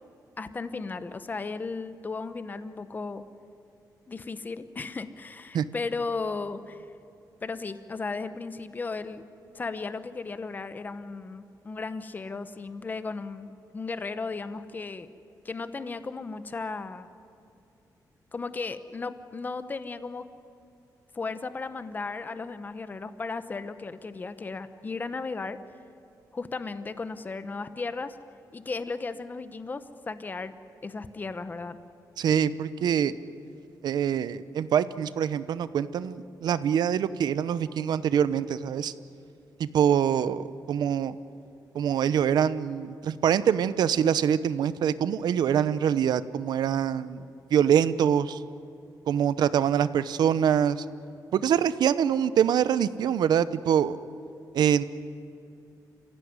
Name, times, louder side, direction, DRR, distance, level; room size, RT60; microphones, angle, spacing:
voice 1, 0.4-3.2 4.1-6.8 7.4-9.2 9.5-15.1 15.4-17.1 18.3-20.3 21.1-25.6 26.3-28.2 28.5-30.5 30.8-31.8, left 4 dB, 25° left, 12 dB, 1.0 m, -35 dB
voice 2, 32.2-33.1 33.8-38.9 39.6-41.1 41.7-47.2 47.5-48.4 49.1-50.8 51.3-54.0 54.5-54.8, right 8 dB, 80° right, 15 dB, 0.8 m, -24 dB
28.0 x 16.0 x 9.7 m, 2.7 s
wide cardioid pair, 150°, 7 cm